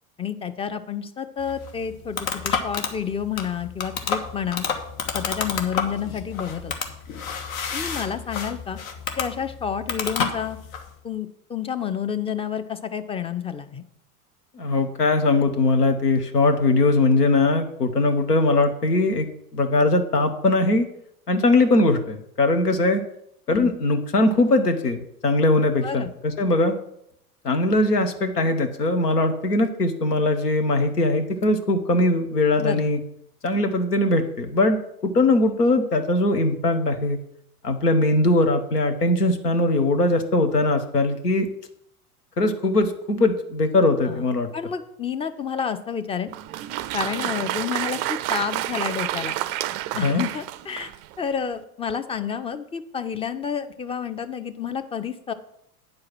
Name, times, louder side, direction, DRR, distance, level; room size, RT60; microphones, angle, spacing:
voice 1, 0.2-4.7 5.1-6.7 7.7-8.8 9.2-10.6 11.0-13.8 21.3-21.4 23.5-23.7 25.8-26.1 32.6-32.9 44.1-44.3 44.5-46.3 46.9-49.4 49.9-55.3, left 7 dB, 15° left, 10 dB, 0.6 m, -29 dB
sound 1, 1.4-10.9, left 6 dB, 60° left, 1.5 m, -30 dB
voice 2, 14.6-19.3 19.5-20.9 21.3-23.0 23.5-26.7 27.4-33.0 33.4-37.2 37.6-41.5 42.4-44.5 50.0-50.2, left 2 dB, 85° left, 7 dB, 1.3 m, -21 dB
Applause, 46.3-51.1, right 14 dB, 35° right, 0.4 m, -29 dB
9.4 x 4.8 x 7.5 m, 0.74 s
figure-of-eight pair, 85°, 46 cm